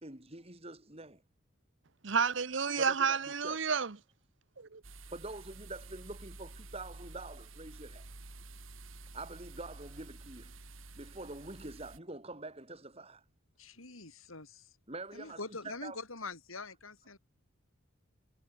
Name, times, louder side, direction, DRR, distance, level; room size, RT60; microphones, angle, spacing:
voice 1, 0.0-1.2 2.8-3.6 5.1-8.0 9.1-10.5 11.0-13.2 14.9-16.0, right 2 dB, 30° right, 4.0 m, -45 dB
voice 2, 2.0-4.0 4.6-4.8, right 6 dB, 60° right, 1.0 m, -30 dB
sound 1, 4.8-12.0, right 2 dB, 75° right, 3.1 m, -50 dB
voice 3, 13.6-14.6 15.1-17.2, left 3 dB, 90° left, 5.4 m, -44 dB
head